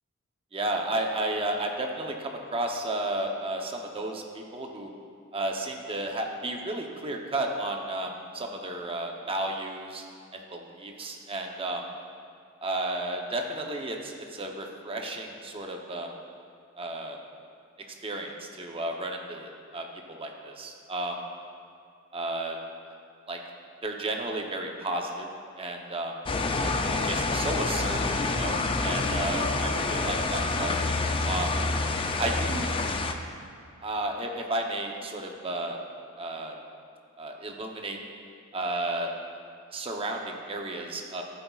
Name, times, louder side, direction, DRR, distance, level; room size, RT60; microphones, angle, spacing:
voice 1, 0.5-4.9 5.3-10.0 10.3-11.8 12.6-16.1 16.8-17.2 18.0-21.2 22.1-22.6 23.3-23.4 23.8-25.3 25.6-26.1 26.6-26.7 27.0-30.8 31.2-31.5 32.2-32.8 33.8-35.8 36.2-36.6 37.2-38.0 38.5-39.1 39.7-41.2, right 1 dB, 25° right, 2 dB, 0.7 m, -33 dB
sound 1, 26.3-33.1, left 3 dB, 25° left, 0.4 m, -27 dB
14.0 x 8.0 x 2.4 m, 2.4 s
head